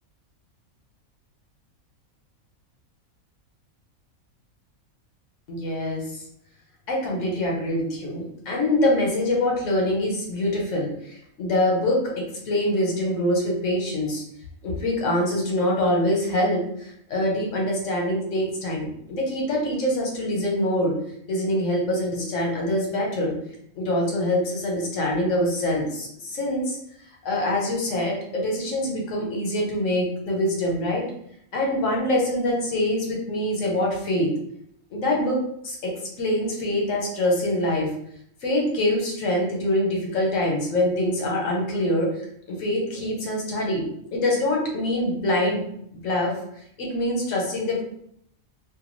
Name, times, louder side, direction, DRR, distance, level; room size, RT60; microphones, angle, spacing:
voice 1, 5.5-6.2 6.9-14.2 14.6-21.0 21.3-23.4 23.8-26.8 27.2-31.0 31.5-34.3 34.9-35.9 36.2-37.9 38.4-42.2 42.5-45.6 45.9-46.3 46.8-47.8, left 1 dB, 65° left, -1 dB, 1.1 m, -24 dB
2.6 x 2.2 x 3.0 m, 0.70 s
omnidirectional pair, 1.5 m